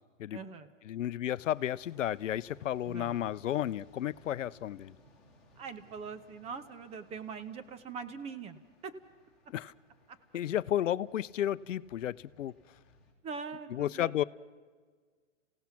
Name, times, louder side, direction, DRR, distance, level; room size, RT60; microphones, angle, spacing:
voice 1, 0.3-0.7 2.9-3.3 5.6-8.9 13.2-14.2, right 5 dB, 15° right, 10 dB, 0.9 m, -42 dB
voice 2, 0.9-5.0 9.5-9.7 10.3-12.5 13.7-14.2, left 11 dB, 75° left, 17 dB, 0.7 m, -32 dB
sound 1, 1.4-13.1, equal, ahead, 5.2 m, -62 dB
28.0 x 17.0 x 5.9 m, 1.5 s
hypercardioid pair, 140°, 38 cm